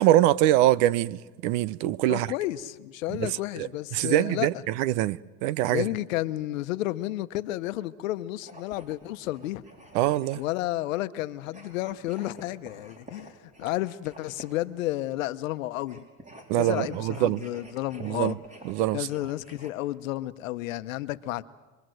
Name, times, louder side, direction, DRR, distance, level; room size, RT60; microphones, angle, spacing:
voice 1, 0.0-2.3 3.1-3.3 3.6-3.7 3.9-5.8 9.9-10.4 16.5-17.4 18.0-18.4 18.6-19.0, right 14 dB, 70° right, 0.9 m, -24 dB
voice 2, 2.1-4.6 5.7-9.6 10.3-13.3 13.6-16.0 16.5-18.4 18.9-21.4, left 16 dB, 85° left, 1.1 m, -31 dB
sound 1, 8.4-10.7 11.4-14.7 15.8-19.7, right 1 dB, 20° right, 4.4 m, -50 dB
26.0 x 22.0 x 7.9 m
supercardioid pair, 115°, 38 cm